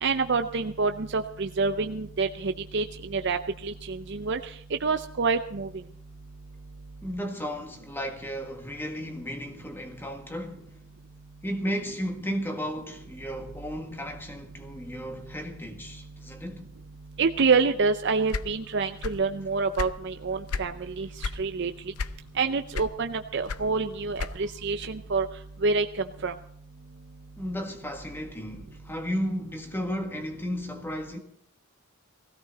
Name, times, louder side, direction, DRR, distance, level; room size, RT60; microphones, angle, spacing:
voice 1, 0.0-4.5 4.8-5.7 17.2-21.7 22.4-25.3 25.6-25.9 26.2-26.3, right 4 dB, 50° right, 0.6 m, -27 dB
voice 2, 7.0-10.7 11.4-16.7 27.4-31.2, equal, 10° left, 1.6 m, -34 dB
sound 1, 18.3-19.3 19.6-20.8 21.2-21.5 22.0-22.4 22.7-24.6, left 4 dB, 85° left, 0.6 m, -33 dB
17.0 x 16.0 x 4.1 m
head